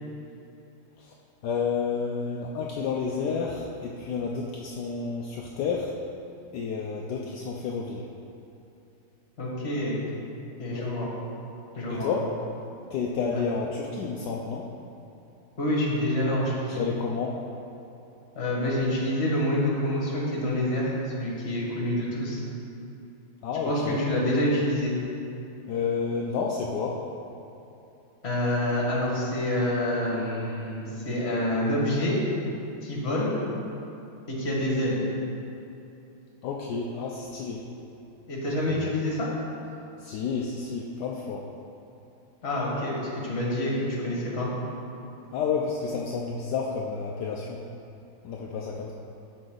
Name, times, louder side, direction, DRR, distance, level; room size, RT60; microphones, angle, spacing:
voice 1, 1.4-5.9 6.5-8.1 10.7-10.9 11.9-12.3 12.9-14.7 16.7-17.4 23.4-24.0 25.7-27.0 36.4-37.6 38.7-38.9 40.0-41.5 45.3-47.6 48.2-48.9, left 5 dB, 70° left, -1 dB, 1.0 m, -30 dB
voice 2, 9.4-10.0 10.6-11.1 11.8-12.1 13.3-13.4 15.6-16.8 18.4-22.4 23.6-24.9 28.2-32.2 32.8-33.4 34.3-35.0 38.3-39.3 42.4-44.5, left 1 dB, 35° left, -4 dB, 1.8 m, -27 dB
13.0 x 4.9 x 3.9 m, 2.8 s
omnidirectional pair, 2.3 m